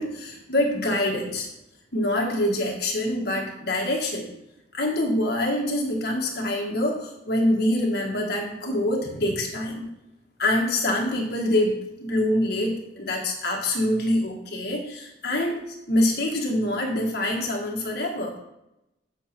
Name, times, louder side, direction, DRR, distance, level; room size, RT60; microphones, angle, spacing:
voice 1, 0.0-1.5 1.9-4.3 4.7-9.9 10.4-18.4, left 1 dB, 55° left, 0 dB, 1.7 m, -25 dB
7.1 x 7.1 x 4.3 m, 0.88 s
head